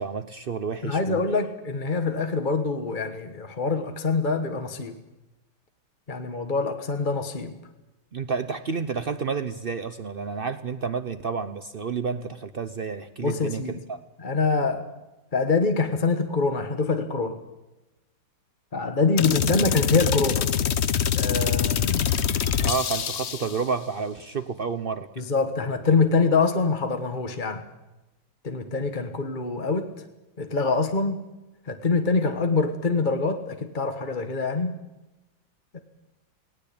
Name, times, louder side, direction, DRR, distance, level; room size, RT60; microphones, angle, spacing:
voice 1, 0.0-1.2 8.1-13.6 13.9-14.0 22.6-25.1, right 5 dB, 80° right, 11 dB, 0.5 m, -30 dB
voice 2, 0.8-5.0 6.1-7.6 13.2-13.7 14.2-14.9 15.3-17.4 18.7-20.5 21.1-22.1 25.2-27.6 28.4-29.9 30.4-31.2 31.7-34.8 35.7-35.8, left 4 dB, 25° left, 6 dB, 1.3 m, -25 dB
sound 1, 19.2-23.6, left 8 dB, 60° left, 0.7 m, -25 dB
19.0 x 18.5 x 8.6 m, 1.0 s
omnidirectional pair, 2.2 m